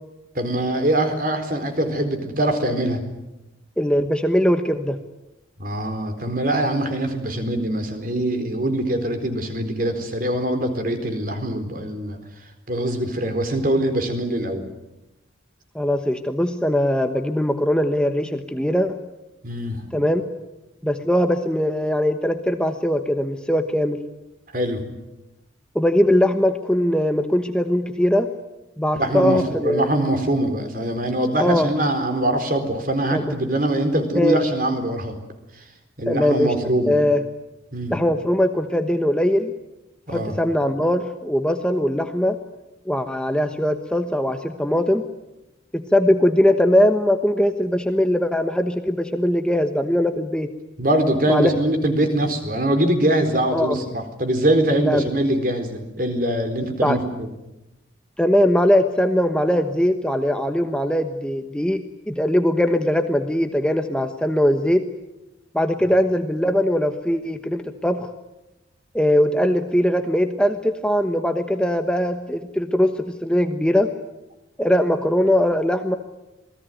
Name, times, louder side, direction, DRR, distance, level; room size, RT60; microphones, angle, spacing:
voice 1, 0.3-3.0 5.6-12.2 12.7-14.6 19.4-19.8 24.5-24.8 28.9-35.2 35.5-35.6 36.0-36.9 37.7-38.0 40.1-40.4 50.8-57.3, right 1 dB, 45° right, 8 dB, 4.2 m, -23 dB
voice 2, 3.8-5.0 15.7-19.0 19.9-20.2 20.8-24.0 25.7-28.3 28.8-29.9 31.4-31.7 33.1-33.3 34.1-34.4 36.1-36.5 36.8-37.2 37.9-39.5 40.1-42.4 42.9-45.1 45.7-50.5 51.3-51.5 53.5-53.8 54.8-55.0 56.8-57.0 58.2-64.8 65.5-68.1 68.9-73.9 74.6-76.0, left 1 dB, 5° left, 6 dB, 1.1 m, -20 dB
28.0 x 20.0 x 9.3 m, 0.96 s
head